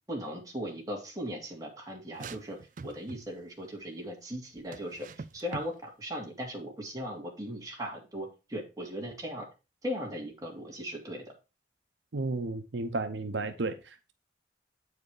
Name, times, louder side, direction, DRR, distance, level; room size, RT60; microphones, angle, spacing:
voice 1, 0.1-9.5 9.8-11.2, equal, 20° right, 2.2 m, -38 dB
sound 1, 2.1-3.4 4.7-5.7, right 4 dB, 45° right, 0.4 m, -43 dB
voice 2, 12.1-13.8, right 3 dB, 80° right, 0.7 m, -32 dB
8.6 x 4.8 x 4.8 m
head